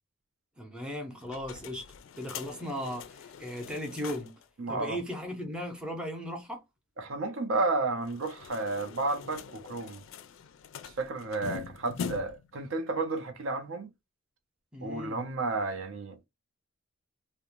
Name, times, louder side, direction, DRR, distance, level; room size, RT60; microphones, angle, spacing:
voice 1, 0.6-1.9 2.2-4.3 4.7-6.6 14.7-15.2, equal, 5° right, 0.6 m, -37 dB
sound 1, 1.2-4.5 4.8-4.9 5.1-5.2 8.0-12.5, left 6 dB, 65° left, 0.3 m, -43 dB
voice 2, 4.6-5.0 7.0-10.0 10.8-13.9 14.8-16.3, right 3 dB, 65° right, 0.5 m, -32 dB
2.5 x 2.0 x 2.8 m
head